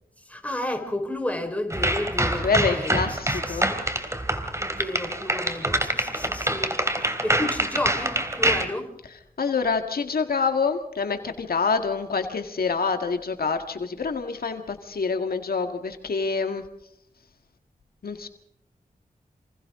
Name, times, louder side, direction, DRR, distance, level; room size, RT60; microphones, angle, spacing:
voice 1, 0.3-3.8 4.6-8.9, left 1 dB, 10° left, 4 dB, 4.5 m, -32 dB
sound 1, 1.7-8.6, right 1 dB, 20° right, 3.0 m, -26 dB
voice 2, 2.4-3.7 9.4-16.6 18.0-18.3, left 5 dB, 80° left, 6 dB, 1.8 m, -26 dB
28.0 x 27.0 x 3.7 m, 0.81 s
wide cardioid pair, 75°, 15 cm